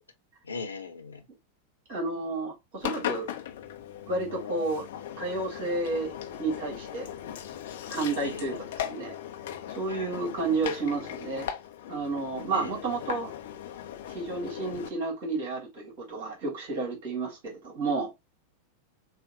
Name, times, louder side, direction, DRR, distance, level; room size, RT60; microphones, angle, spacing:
voice 1, 0.4-1.3 8.2-8.6 9.9-10.2 12.5-12.8, left 4 dB, 75° left, 1.2 m, -39 dB
voice 2, 1.9-3.3 4.1-4.9 5.2-6.1 6.4-7.1 7.9-9.1 9.7-11.5 11.9-13.3 14.1-18.1, right 3 dB, 50° right, 2.8 m, -31 dB
Engine, 2.8-14.9, left 10 dB, 55° left, 0.8 m, -38 dB
6.7 x 2.5 x 2.8 m
figure-of-eight pair, 90°, 0 cm